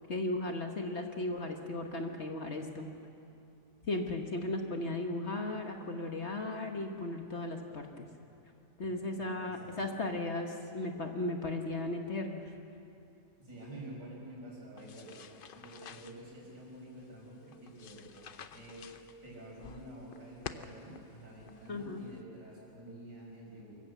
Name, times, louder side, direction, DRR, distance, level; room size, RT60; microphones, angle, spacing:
voice 1, 0.1-2.9 3.9-8.1 8.8-12.5 21.7-22.0, left 2 dB, 45° left, 4 dB, 1.4 m, -36 dB
voice 2, 8.8-9.9 13.4-15.1 15.5-18.1 18.5-18.9 19.2-23.8, right 1 dB, 85° right, -3 dB, 6.5 m, -49 dB
sound 1, 14.8-22.2, left 6 dB, 60° left, 0.6 m, -51 dB
24.5 x 14.5 x 8.1 m, 2.6 s
omnidirectional pair, 1.8 m